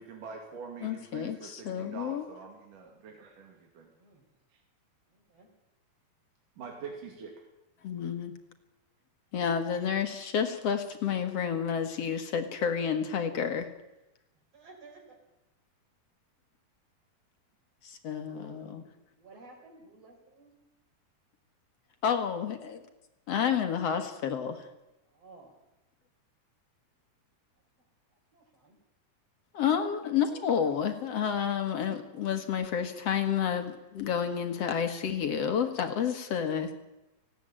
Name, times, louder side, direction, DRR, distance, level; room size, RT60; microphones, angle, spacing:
voice 1, 0.0-3.9 6.6-7.3, right 5 dB, 70° right, 1 dB, 4.1 m, -44 dB
voice 2, 0.8-2.2 7.8-8.3 9.3-13.7 17.8-18.8 22.0-22.8 23.3-24.7 29.5-36.7, left 7 dB, 55° left, 7 dB, 2.2 m, -30 dB
voice 3, 3.9-4.2 5.1-5.5 7.9-8.1 9.5-9.6 14.5-15.2 18.2-18.6 19.2-20.6 25.1-25.6 28.1-28.8 30.0-30.2, right 3 dB, 45° right, 2 dB, 5.9 m, -55 dB
19.0 x 16.0 x 9.0 m, 0.97 s
omnidirectional pair, 3.9 m